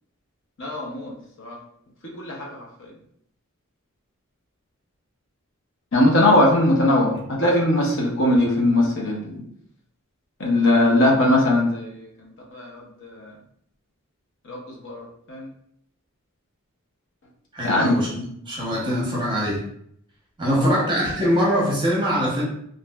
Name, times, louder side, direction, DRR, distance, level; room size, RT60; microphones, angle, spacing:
voice 1, 0.6-1.1 1.4-1.6 2.2-2.5 2.8-2.9 5.9-9.4 10.4-13.3 14.5-14.6 14.8-15.5 17.6-18.0 20.6-20.8, left 1 dB, 55° left, -2 dB, 0.6 m, -20 dB
voice 2, 17.5-19.6 20.4-22.4, equal, 20° right, -4 dB, 0.7 m, -23 dB
3.0 x 2.5 x 2.2 m, 0.70 s
head